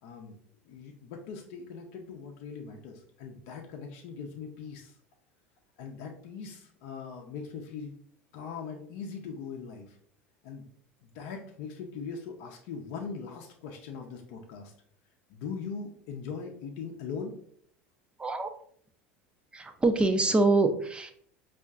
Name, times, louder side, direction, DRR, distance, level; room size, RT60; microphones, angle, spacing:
voice 1, 0.0-0.4 0.6-5.0 5.8-7.9 8.3-10.0 10.4-10.7 11.0-14.7 15.3-17.3, left 5 dB, 60° left, 1 dB, 0.6 m, -40 dB
voice 2, 18.2-18.5 19.5-21.1, right 3 dB, 15° right, 7 dB, 0.5 m, -25 dB
5.2 x 2.5 x 2.3 m, 0.62 s
hypercardioid pair, 80°, 7 cm